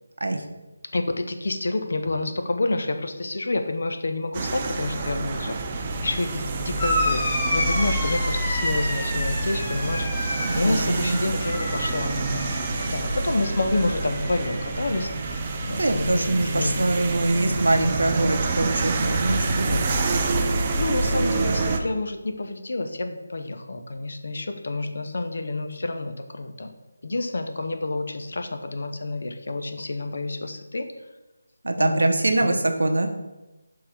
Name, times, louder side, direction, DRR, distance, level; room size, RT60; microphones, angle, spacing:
voice 1, 0.9-5.6 6.0-12.5 12.9-15.1 15.6-17.7 19.5-19.9 20.8-26.7 27.0-30.9 31.8-32.1 32.4-32.6, left 2 dB, 60° left, 6 dB, 0.7 m, -29 dB
sound 1, 4.3-21.8, right 2 dB, 20° right, 0.4 m, -27 dB
sound 2, 6.8-15.8 16.1-16.8 17.9-18.0, left 1 dB, 15° left, 0.7 m, -31 dB
voice 2, 10.4-11.2 15.8-19.8 31.6-33.1, right 2 dB, 80° right, 5 dB, 0.8 m, -23 dB
6.4 x 3.8 x 4.2 m, 1.1 s
figure-of-eight pair, 175°, 0 cm